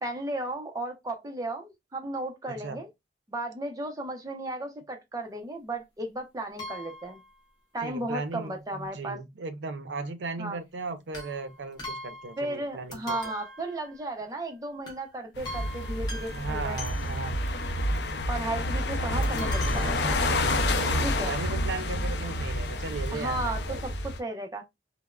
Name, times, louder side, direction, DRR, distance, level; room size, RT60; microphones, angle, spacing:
voice 1, 0.0-2.9 3.3-7.2 7.7-9.2 10.4-10.6 12.4-16.8 18.3-20.2 21.0-21.3 23.1-24.6, right 1 dB, 20° right, 0.5 m, -35 dB
voice 2, 2.5-2.8 7.8-13.3 16.3-17.6 20.7-23.8, right 3 dB, 85° right, 0.5 m, -36 dB
sound 1, 6.6-7.3 11.1-12.6 12.9-14.4 14.9-15.1 15.5-17.5 19.2-20.7 21.4-21.5 21.7-21.8, left 1 dB, 25° left, 1.0 m, -42 dB
sound 2, 15.4-24.2, left 1 dB, 70° left, 0.5 m, -29 dB
3.4 x 2.0 x 2.2 m
head